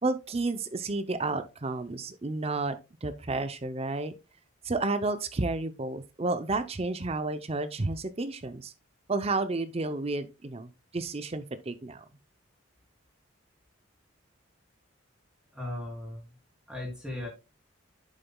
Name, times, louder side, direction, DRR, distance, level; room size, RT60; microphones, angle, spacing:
voice 1, 0.0-2.7 3.0-4.1 4.6-8.7 9.1-12.0, right 3 dB, 30° right, 0.6 m, -31 dB
voice 2, 15.5-16.3 16.7-17.3, left 1 dB, 5° right, 3.1 m, -37 dB
9.0 x 6.9 x 2.3 m
head